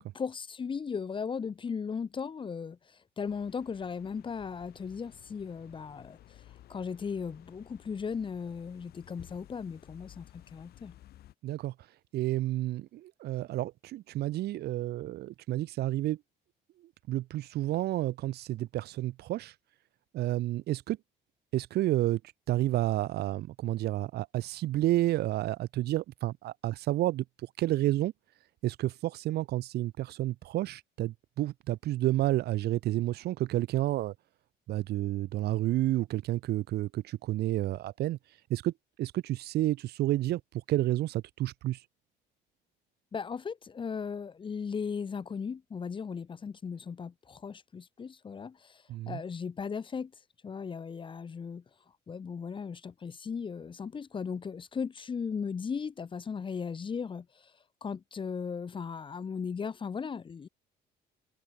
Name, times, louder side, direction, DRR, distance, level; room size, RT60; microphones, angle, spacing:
voice 1, 0.0-6.4 6.7-10.9 43.1-50.1 50.4-51.6 52.1-57.5 57.8-60.5, left 6 dB, 30° left, 1.0 m, -37 dB
sound 1, 3.2-11.3, left 13 dB, 70° left, 2.7 m, -55 dB
voice 2, 11.4-11.7 12.1-16.2 17.1-19.5 20.1-21.0 21.5-22.2 22.5-27.2 27.6-28.1 28.6-34.1 34.7-38.2 38.5-38.7 39.0-40.4 40.7-41.8 48.9-49.2, right 15 dB, 75° right, 2.0 m, -30 dB
cardioid pair, 110°, 17 cm